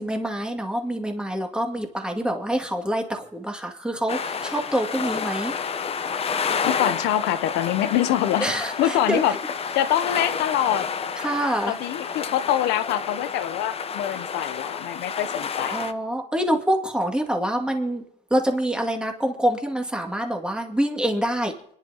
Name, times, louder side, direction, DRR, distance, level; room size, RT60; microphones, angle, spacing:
voice 1, 0.0-5.6 8.4-9.4 11.2-11.8 15.7-18.0 18.3-21.5, right 1 dB, 5° right, 3 dB, 2.2 m, -26 dB
sound 1, 4.1-15.9, left 6 dB, 35° left, 0.8 m, -30 dB
voice 2, 6.6-8.5 8.8-9.4 9.7-10.9 11.7-15.8, left 11 dB, 90° left, 12 dB, 0.7 m, -24 dB
29.0 x 10.5 x 2.9 m, 0.72 s
cardioid pair, 110°, 17 cm